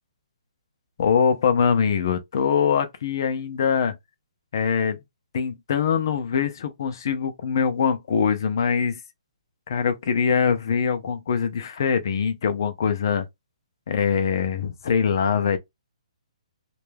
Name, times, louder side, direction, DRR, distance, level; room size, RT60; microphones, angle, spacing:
voice 1, 1.0-4.0 4.5-5.0 5.3-9.0 9.7-13.3 13.9-15.6, left 6 dB, 35° left, 0.4 m, -23 dB
2.2 x 2.1 x 3.1 m
hypercardioid pair, 180°, 4 cm